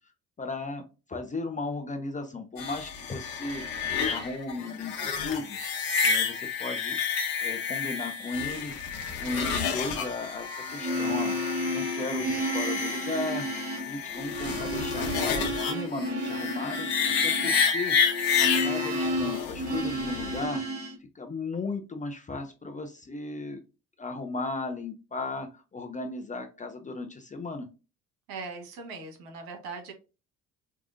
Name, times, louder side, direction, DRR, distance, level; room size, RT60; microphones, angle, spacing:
voice 1, 0.4-0.8 1.1-3.6 4.0-5.6 6.0-7.0 7.4-8.7 9.2-11.3 11.7-13.5 13.8-18.0 18.4-20.6 21.1-23.6 24.0-27.7, left 3 dB, 20° left, 5 dB, 0.6 m, -36 dB
sound 1, 2.6-20.4, left 6 dB, 65° left, 1.0 m, -30 dB
sound 2, 10.7-20.9, equal, 35° right, 1.5 m, -32 dB
voice 2, 28.3-29.9, right 4 dB, 55° right, 5 dB, 1.2 m, -40 dB
4.7 x 2.4 x 2.6 m, 0.31 s
figure-of-eight pair, 50°, 43 cm